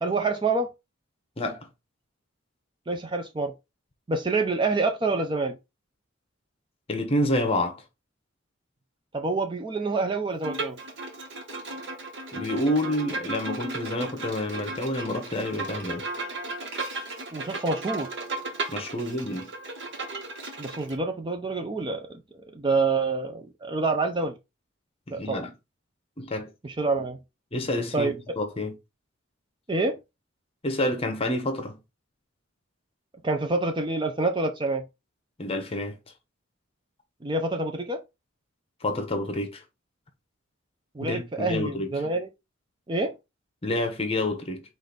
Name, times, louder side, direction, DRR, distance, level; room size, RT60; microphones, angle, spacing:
voice 1, 0.0-0.7 2.9-3.5 4.1-5.6 9.1-10.8 17.3-18.1 20.6-22.2 22.5-24.3 25.1-25.4 26.6-27.2 27.9-28.1 29.7-30.0 33.2-34.8 37.2-38.0 41.0-42.3 42.9-43.1, right 3 dB, 25° right, 0.5 m, -27 dB
voice 2, 1.4-1.7 6.9-7.8 12.3-16.0 18.7-19.5 25.1-25.5 26.2-26.5 27.5-28.7 30.6-31.8 35.4-36.0 38.8-39.6 41.0-41.9 43.6-44.6, left 1 dB, 30° left, 0.9 m, -28 dB
Bowed string instrument, 10.4-20.9, right 2 dB, 60° right, 1.2 m, -35 dB
5.1 x 2.6 x 3.9 m
head